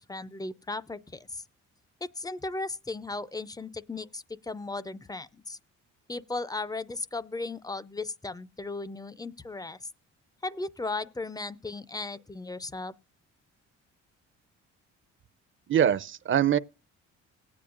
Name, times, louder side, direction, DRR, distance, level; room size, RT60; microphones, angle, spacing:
voice 1, 0.0-1.4 2.2-5.6 6.1-9.8 10.4-12.9, left 3 dB, 15° left, 0.4 m, -36 dB
voice 2, 15.7-16.6, right 9 dB, 40° right, 0.5 m, -23 dB
19.0 x 8.6 x 2.5 m
cardioid pair, 90°, 30 cm